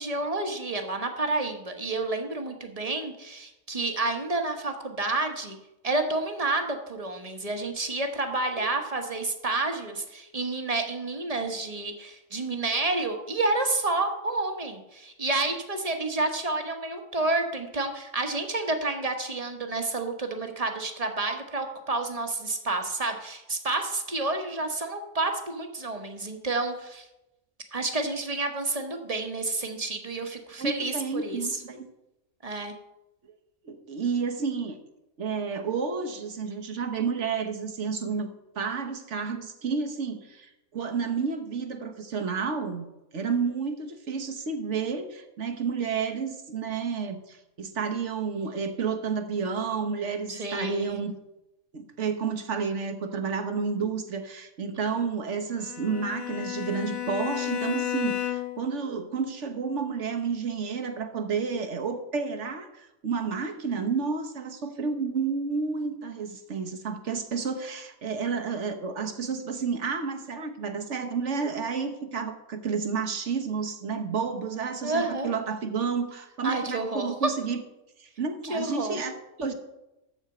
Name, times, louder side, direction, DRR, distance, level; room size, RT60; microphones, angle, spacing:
voice 1, 0.0-5.6 5.8-27.1 27.7-31.6 32.4-32.7 50.3-51.0 74.8-75.3 76.4-77.1 78.5-79.0, right 2 dB, 30° right, 5 dB, 1.1 m, -29 dB
voice 2, 30.6-31.9 33.6-34.8 35.2-38.3 38.5-51.1 51.7-77.6 78.0-79.5, right 5 dB, 60° right, 6 dB, 1.3 m, -31 dB
Bowed string instrument, 55.6-58.7, left 11 dB, 55° left, 1.2 m, -32 dB
13.0 x 4.4 x 7.8 m, 0.93 s
omnidirectional pair, 1.5 m